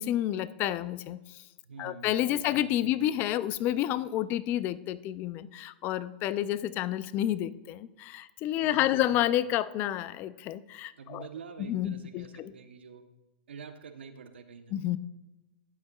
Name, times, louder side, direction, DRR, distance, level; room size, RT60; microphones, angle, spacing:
voice 1, 0.0-1.4 1.8-11.2 11.6-12.5 14.7-15.0, left 12 dB, 35° left, 16 dB, 0.4 m, -30 dB
voice 2, 1.6-3.0 8.6-9.1 11.0-13.0 13.5-15.0, right 5 dB, 90° right, 8 dB, 0.9 m, -47 dB
12.0 x 8.6 x 2.4 m, 1.1 s
hypercardioid pair, 135°, 6 cm